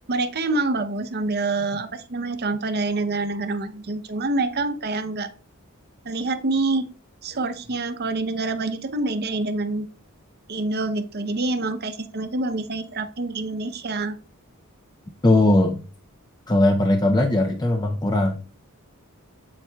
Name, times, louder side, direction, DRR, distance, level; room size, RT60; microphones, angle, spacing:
voice 1, 0.1-5.3 6.0-6.8 7.2-9.9 10.5-14.2, right 2 dB, 45° right, 9 dB, 0.7 m, -26 dB
voice 2, 15.2-15.8 16.5-18.4, left 2 dB, 20° left, 4 dB, 0.5 m, -19 dB
8.1 x 7.2 x 2.3 m, 0.36 s
head